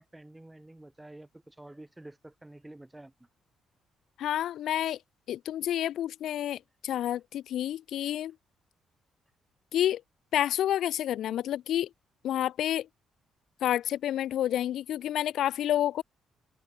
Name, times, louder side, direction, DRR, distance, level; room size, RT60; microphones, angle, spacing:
voice 1, 0.0-3.1, right 1 dB, 10° right, 3.7 m, -49 dB
voice 2, 4.2-5.0 5.3-8.3 9.7-10.0 10.3-11.9 12.2-12.9 13.6-16.0, left 11 dB, 75° left, 0.6 m, -29 dB
open air
cardioid pair, 90°, 0 cm